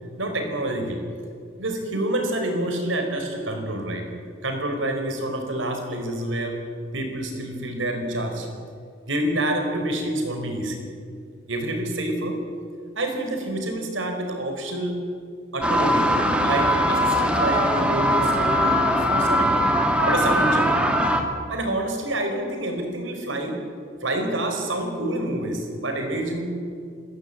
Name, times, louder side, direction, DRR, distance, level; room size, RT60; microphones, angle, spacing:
voice 1, 0.2-1.0 1.6-4.1 4.4-6.6 6.9-8.5 9.1-10.8 11.5-12.4 12.9-15.0 15.5-16.1 16.4-19.7 20.1-20.8 21.5-23.6 24.0-26.4, right 1 dB, 70° right, 4 dB, 4.7 m, -27 dB
sound 1, 15.6-21.2, equal, 5° right, 2.0 m, -21 dB
28.0 x 14.5 x 8.7 m, 2.2 s
head